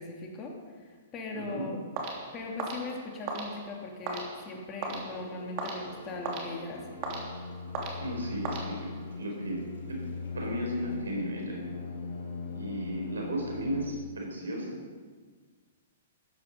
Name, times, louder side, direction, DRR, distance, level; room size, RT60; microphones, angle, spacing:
voice 1, 0.0-1.8 2.3-7.0, left 3 dB, 30° left, 0 dB, 2.7 m, -39 dB
voice 2, 1.3-1.7 8.0-8.9 9.2-9.6 9.9-10.0 10.3-11.7 12.5-14.8, equal, 85° right, 0 dB, 4.3 m, -34 dB
sound 1, 2.0-9.2, right 3 dB, 40° right, 3.0 m, -39 dB
sound 2, 5.1-13.9, left 4 dB, 70° left, 4.3 m, -40 dB
14.0 x 9.9 x 5.4 m, 1.5 s
hypercardioid pair, 125°, 0 cm